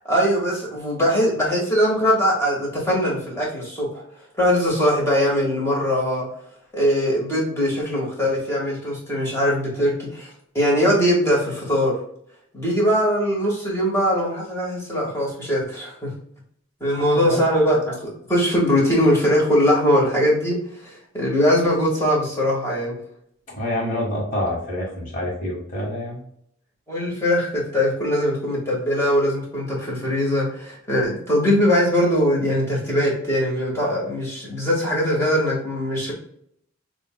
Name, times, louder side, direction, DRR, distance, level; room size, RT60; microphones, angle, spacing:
voice 1, 0.0-3.9 4.4-6.3 6.7-11.9 12.5-16.1 16.8-23.0 26.9-36.1, equal, 15° left, -5 dB, 1.6 m, -21 dB
voice 2, 23.5-26.2, left 1 dB, 40° left, -3 dB, 1.5 m, -27 dB
6.5 x 2.5 x 2.2 m, 0.69 s
head